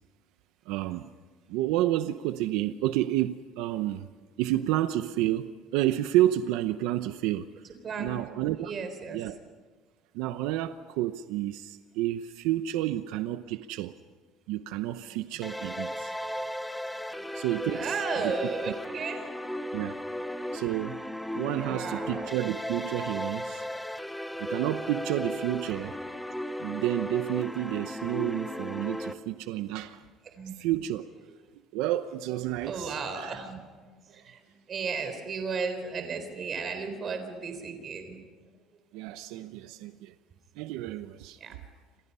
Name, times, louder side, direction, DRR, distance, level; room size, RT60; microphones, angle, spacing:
voice 1, 0.7-1.1 1.5-4.1 4.4-7.7 8.0-8.7 9.1-9.4 10.1-13.9 14.5-16.1 17.3-17.9 18.2-18.4 19.7-20.0 20.5-21.0 21.3-23.6 24.4-26.0 26.6-30.0 30.6-31.1 31.7-33.4 38.9-40.1 40.6-41.4, right 14 dB, 80° right, 10 dB, 0.8 m, -30 dB
voice 2, 7.8-8.2 8.6-9.2 15.1-15.5 17.1-17.3 17.7-19.7 20.2-20.6 21.6-22.4 25.7-25.9 30.2-30.5 32.5-38.2 41.4-41.5, right 5 dB, 30° right, 7 dB, 3.9 m, -35 dB
sound 1, 15.4-29.1, left 1 dB, ahead, 0.8 m, -36 dB
29.0 x 26.0 x 5.6 m, 1.4 s
cardioid pair, 170°, 0 cm